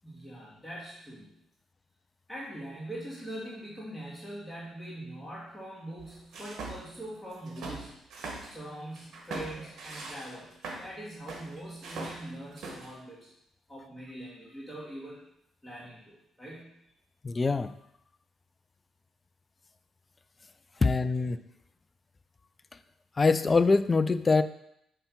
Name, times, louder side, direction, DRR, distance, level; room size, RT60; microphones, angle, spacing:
voice 1, 0.0-1.3 2.3-7.9 8.4-13.3 13.7-15.2 15.6-16.7 20.7-20.8, right 1 dB, 5° left, -6 dB, 2.0 m, -42 dB
sound 1, 6.0-7.0 7.3-8.5 8.9-10.9 11.3-12.9, right 3 dB, 65° right, 1.4 m, -41 dB
voice 2, 17.2-17.7 20.8-21.4 23.2-24.4, left 4 dB, 30° left, 12 dB, 0.4 m, -24 dB
5.7 x 3.4 x 5.8 m, 0.77 s
cardioid pair, 90°, 0 cm